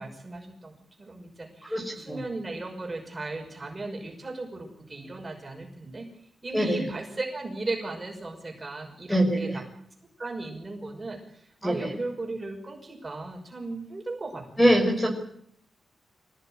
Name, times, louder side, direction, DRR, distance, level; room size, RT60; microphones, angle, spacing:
voice 1, 0.0-6.1 6.4-9.5 10.2-15.1, right 2 dB, 20° right, 1 dB, 6.0 m, -36 dB
voice 2, 1.7-2.2 6.5-6.8 9.1-9.6 11.6-11.9 14.6-15.1, equal, 5° left, 2 dB, 5.9 m, -23 dB
25.5 x 18.0 x 9.1 m, 0.69 s
wide cardioid pair, 155°, 0 cm